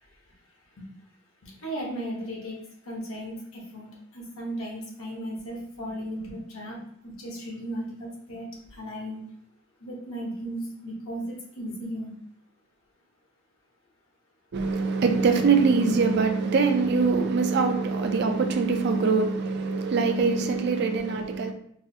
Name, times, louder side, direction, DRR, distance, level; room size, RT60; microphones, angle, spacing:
voice 1, 1.4-2.6 2.8-9.2 9.8-12.1, equal, 70° left, 1.1 m, -36 dB
voice 2, 14.5-21.5, right 4 dB, 50° right, 0.4 m, -23 dB
4.7 x 2.0 x 2.7 m
head